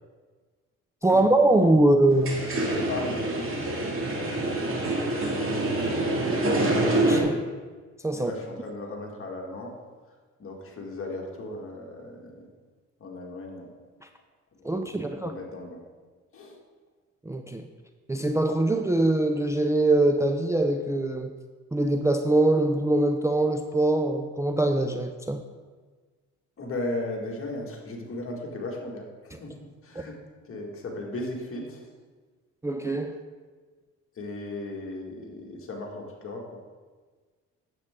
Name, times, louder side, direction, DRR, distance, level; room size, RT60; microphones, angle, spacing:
voice 1, 1.0-2.5 6.8-7.4 8.0-8.3 14.6-15.3 17.3-17.6 18.1-21.3 21.7-25.4 32.6-33.2, right 2 dB, 10° right, 5 dB, 0.5 m, -23 dB
sound 1, 2.1-7.2, right 2 dB, 45° right, 2.3 m, -26 dB
voice 2, 2.6-3.8 8.1-9.8 10.4-12.5 13.0-13.7 14.6-15.8 16.3-16.6 26.6-30.2 30.4-31.9 34.1-36.6, left 2 dB, 45° left, 0 dB, 2.0 m, -36 dB
9.1 x 7.6 x 3.7 m, 1.4 s
cardioid pair, 90°, 30 cm